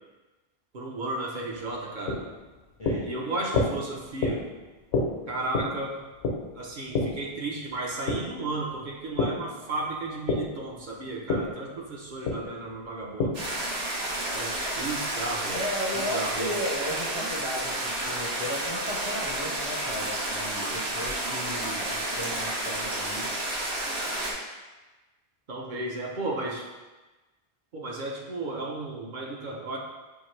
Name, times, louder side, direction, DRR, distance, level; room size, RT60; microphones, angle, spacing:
voice 1, 0.7-2.2 3.0-4.4 5.3-6.0 6.6-13.3 14.3-15.6 15.9-16.6 25.5-26.7 27.7-29.8, right 2 dB, 55° right, -2 dB, 0.8 m, -34 dB
sound 1, 1.5-9.4 9.8-13.6, left 3 dB, 75° left, 1.0 m, -30 dB
voice 2, 2.8-3.1 15.5-23.3, left 1 dB, 35° left, -5 dB, 0.6 m, -35 dB
sound 2, 13.3-24.3, right 1 dB, 85° right, 1.2 m, -31 dB
5.7 x 2.6 x 3.2 m, 1.2 s
omnidirectional pair, 1.0 m